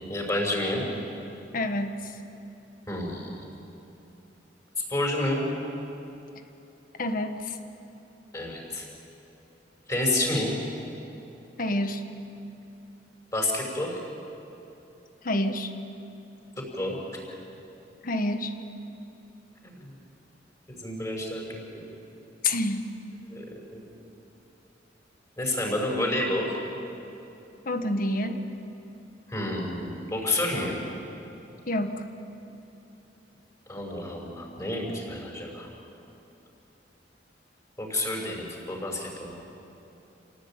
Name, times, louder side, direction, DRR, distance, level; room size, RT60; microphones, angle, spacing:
voice 1, 0.1-0.8 2.9-3.3 4.9-5.4 8.3-8.8 9.9-10.5 13.3-14.0 16.6-17.0 19.6-19.9 20.7-21.5 21.7-21.8 23.3-23.4 23.7-23.8 25.4-26.5 29.3-30.8 33.7-35.7 37.8-39.3, left 1 dB, 20° left, -1 dB, 5.8 m, -29 dB
voice 2, 1.5-2.1 7.0-7.6 11.6-12.0 15.2-15.7 18.0-18.5 22.4-22.9 27.7-28.4 31.7-32.1, left 1 dB, 50° left, 7 dB, 1.6 m, -28 dB
28.5 x 18.0 x 9.0 m, 3.0 s
head